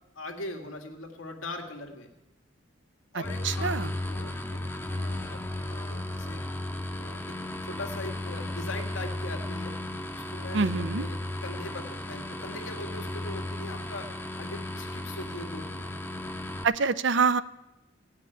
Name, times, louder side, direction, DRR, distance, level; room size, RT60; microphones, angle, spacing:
voice 1, 0.2-2.1 3.1-6.4 6.9-7.4 7.6-9.8 10.1-14.1 14.4-15.9, left 2 dB, 85° left, 4 dB, 1.9 m, -41 dB
sound 1, 3.2-16.6, left 1 dB, 10° left, 0.9 m, -35 dB
voice 2, 3.4-3.9 10.5-11.0 16.6-17.4, right 5 dB, 65° right, 15 dB, 0.5 m, -25 dB
16.0 x 5.9 x 9.9 m, 0.98 s
head